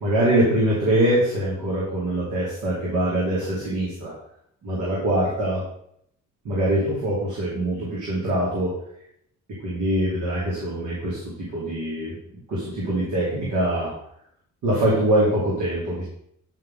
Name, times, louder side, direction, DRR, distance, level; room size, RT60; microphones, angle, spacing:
voice 1, 0.0-4.1 4.6-5.6 6.4-8.7 9.6-12.2 12.5-13.9 14.6-16.1, right 1 dB, 75° right, -6 dB, 2.6 m, -23 dB
8.8 x 5.5 x 3.8 m, 0.72 s
cardioid pair, 90°, 30 cm